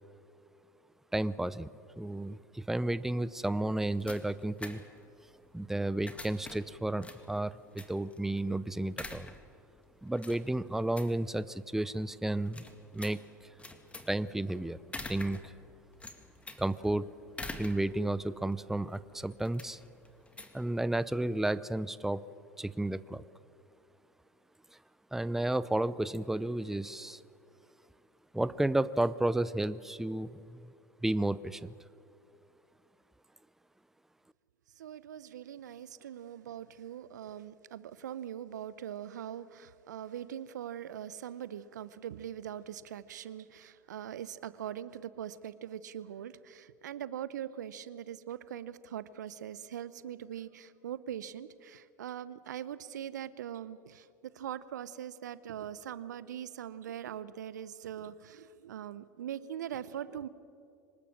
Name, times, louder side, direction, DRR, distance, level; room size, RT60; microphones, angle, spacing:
voice 1, 1.1-1.7 2.0-4.8 5.5-9.3 10.0-12.6 12.9-13.5 14.1-14.8 15.1-15.5 16.6-17.1 17.6-19.8 20.5-22.2 22.6-23.2 25.1-27.2 28.3-30.7 31.0-31.7, right 1 dB, 5° right, 17 dB, 0.6 m, -32 dB
sound 1, 3.4-21.3, left 2 dB, 15° left, 2.1 m, -48 dB
voice 2, 34.8-60.3, right 10 dB, 80° right, 17 dB, 0.8 m, -42 dB
24.5 x 20.0 x 7.5 m, 2.5 s
hypercardioid pair, 85°, 9 cm